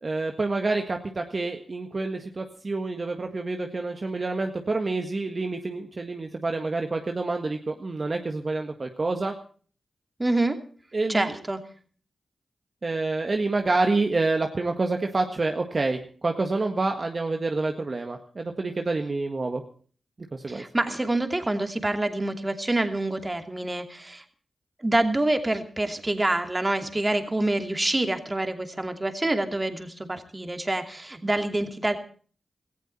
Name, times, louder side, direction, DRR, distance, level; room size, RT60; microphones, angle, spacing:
voice 1, 0.0-9.4 10.9-11.3 12.8-19.6 20.3-20.6, right 3 dB, 45° right, 4 dB, 1.7 m, -28 dB
voice 2, 10.2-10.6 11.1-11.6 20.5-24.2 24.8-32.0, right 2 dB, 25° right, 6 dB, 2.7 m, -26 dB
18.0 x 14.5 x 4.4 m, 0.43 s
cardioid pair, 45°, 0 cm